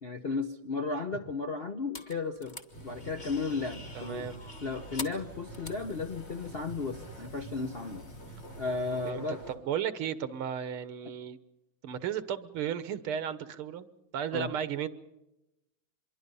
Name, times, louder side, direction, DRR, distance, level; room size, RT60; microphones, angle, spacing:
voice 1, 0.0-4.3 4.6-8.0 8.6-9.4 14.3-14.5, left 4 dB, 50° left, 6 dB, 0.7 m, -34 dB
sound 1, 1.9-9.1, left 3 dB, 25° left, 1.4 m, -48 dB
sound 2, 2.7-9.6, right 1 dB, 75° left, 4.6 m, -46 dB
voice 2, 4.0-4.4 9.1-11.4 11.8-13.9 14.1-14.9, right 9 dB, 80° right, 13 dB, 2.0 m, -34 dB
25.5 x 22.5 x 5.5 m, 0.93 s
omnidirectional pair, 2.4 m